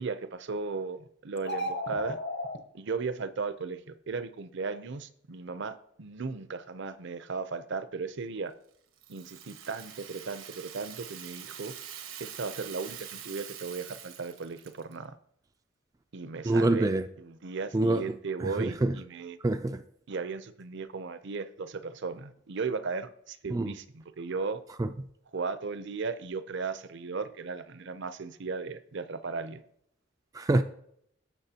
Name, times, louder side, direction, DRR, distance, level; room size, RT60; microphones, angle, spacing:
voice 1, 0.0-2.2 2.7-8.5 9.1-11.7 12.2-15.2 16.1-16.9 17.2-19.4 20.1-24.6 25.3-29.6, right 4 dB, 60° right, 0.6 m, -36 dB
sound 1, 1.4-2.6, left 1 dB, 55° left, 1.0 m, -33 dB
Rattle (instrument), 9.0-15.0, right 9 dB, 85° right, 1.1 m, -45 dB
voice 2, 16.4-17.0 17.7-18.0 18.4-18.9 19.4-19.8 23.5-23.7 24.8-24.9 30.3-30.6, right 2 dB, 15° right, 0.3 m, -25 dB
17.0 x 6.7 x 2.9 m
head